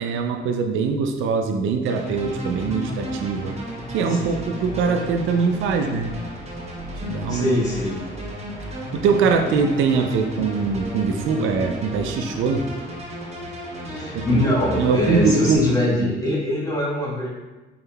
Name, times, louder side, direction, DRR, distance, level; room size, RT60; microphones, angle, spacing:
voice 1, 0.0-3.5 3.9-6.2 7.0-7.5 8.9-12.7 14.1-16.1, right 5 dB, 85° right, 5 dB, 0.4 m, -22 dB
sound 1, 1.9-15.6, equal, 30° right, 1.0 m, -33 dB
voice 2, 4.1-4.6 7.3-8.0 13.8-17.3, left 1 dB, 15° left, -5 dB, 1.3 m, -23 dB
4.4 x 3.5 x 2.2 m, 1.2 s
cardioid pair, 90°, 20 cm